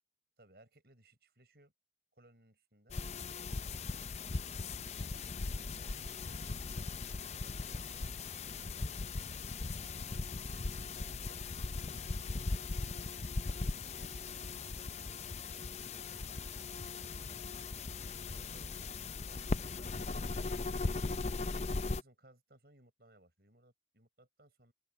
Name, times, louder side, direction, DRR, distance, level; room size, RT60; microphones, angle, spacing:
voice 1, 0.4-1.7 2.1-5.2 5.7-9.0 9.6-10.3 10.9-13.3 13.9-14.9 15.4-17.3 18.3-20.5 21.8-24.7, right 1 dB, 65° right, 7.0 m, -65 dB
sound 1, 2.9-22.0, left 3 dB, 40° left, 0.5 m, -39 dB
open air
head